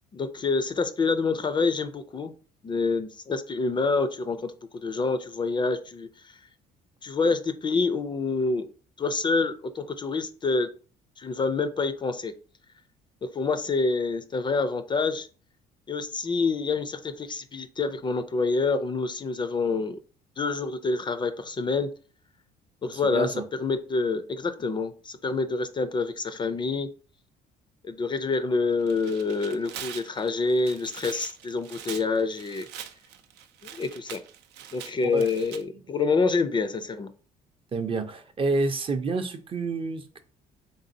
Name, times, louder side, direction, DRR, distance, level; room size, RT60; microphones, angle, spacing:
voice 1, 0.1-2.3 2.6-6.3 7.0-8.7 9.0-10.7 11.2-12.3 13.3-15.3 15.9-20.0 20.4-21.9 22.8-26.9 27.8-32.7 33.6-34.2 34.7-37.1, left 4 dB, 30° left, 10 dB, 0.4 m, -27 dB
voice 2, 22.9-23.4 35.1-35.3 37.7-40.2, right 3 dB, 30° right, 8 dB, 0.5 m, -28 dB
Tearing, 28.7-35.6, right 9 dB, 85° right, 0.5 m, -43 dB
3.9 x 3.5 x 2.6 m, 0.38 s
cardioid pair, 110°, 17 cm